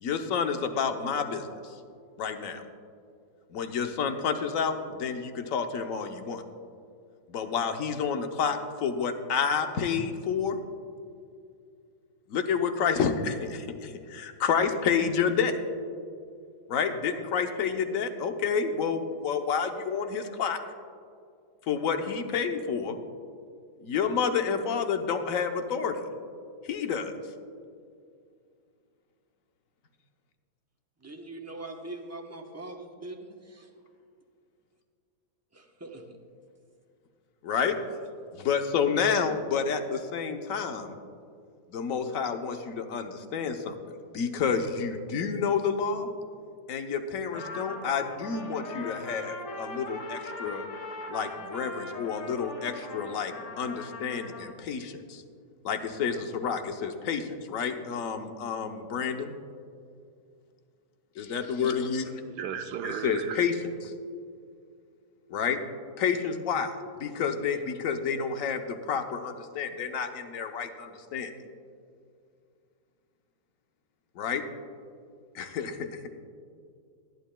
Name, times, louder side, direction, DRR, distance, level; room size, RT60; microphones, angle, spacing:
voice 1, 0.0-1.7 2.2-2.6 3.5-6.4 7.3-10.6 12.3-15.5 16.7-20.6 21.7-23.0 23.8-26.0 26.6-27.1 37.4-37.7 38.3-41.0 41.7-43.8 44.1-46.1 46.7-50.6 51.1-55.2 55.6-59.3 61.2-62.2 63.0-63.5 65.3-65.6 66.0-66.7 67.0-71.3 74.2-74.4 75.3-76.1, left 6 dB, 60° left, 6 dB, 1.1 m, -29 dB
voice 2, 31.0-33.7 35.5-36.2, right 2 dB, 15° right, 2 dB, 0.6 m, -42 dB
Trumpet, 47.3-54.5, left 2 dB, 80° left, 1.9 m, -40 dB
voice 3, 62.3-63.5, right 8 dB, 85° right, 8 dB, 1.3 m, -35 dB
20.0 x 11.5 x 2.2 m, 2.3 s
omnidirectional pair, 1.8 m